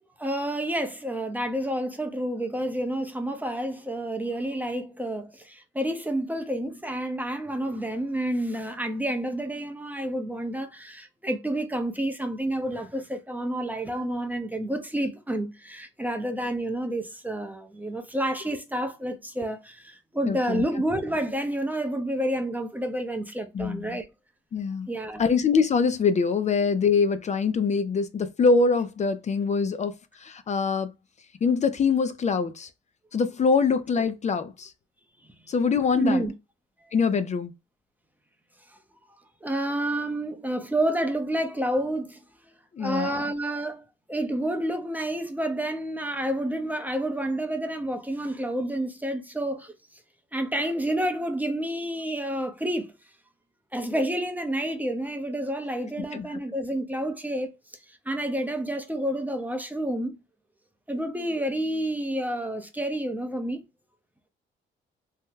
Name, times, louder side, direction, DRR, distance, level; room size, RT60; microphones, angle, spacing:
voice 1, 0.2-24.1 24.9-25.2 35.9-36.3 36.8-36.9 39.4-42.2 42.8-49.7 50.3-52.9 53.7-57.5 57.9-60.2 60.9-63.6, right 1 dB, 10° right, 0.6 m, -29 dB
voice 2, 20.3-20.6 23.5-24.0 24.5-24.9 25.2-30.9 31.4-32.7 33.1-34.7 35.5-36.2 36.9-37.5 42.7-43.2 56.0-56.3, left 5 dB, 35° left, 0.4 m, -24 dB
2.8 x 2.1 x 3.6 m
cardioid pair, 90°, 20 cm